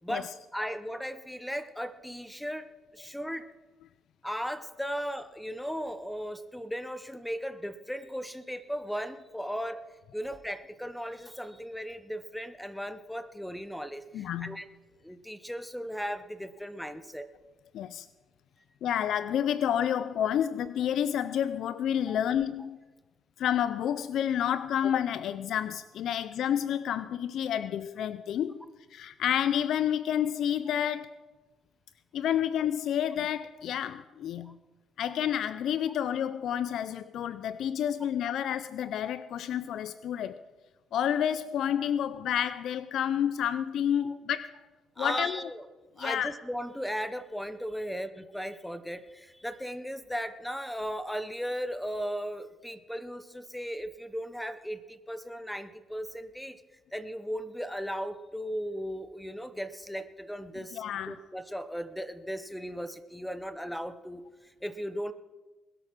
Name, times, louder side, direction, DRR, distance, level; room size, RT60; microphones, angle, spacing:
voice 1, 0.0-2.7 2.9-3.5 4.2-14.7 15.0-17.3 22.1-22.2 34.4-34.5 44.0-44.2 45.0-45.6 46.0-56.6 56.9-65.1, equal, 5° left, 12 dB, 0.8 m, -37 dB
voice 2, 14.1-14.5 17.7-18.1 18.8-22.8 23.4-28.6 28.9-31.2 32.1-34.5 35.0-40.4 40.9-44.5 45.0-45.4 46.0-46.3 60.7-61.2, left 9 dB, 75° left, 15 dB, 0.4 m, -29 dB
21.0 x 8.1 x 6.0 m, 1.2 s
cardioid pair, 90°, 0 cm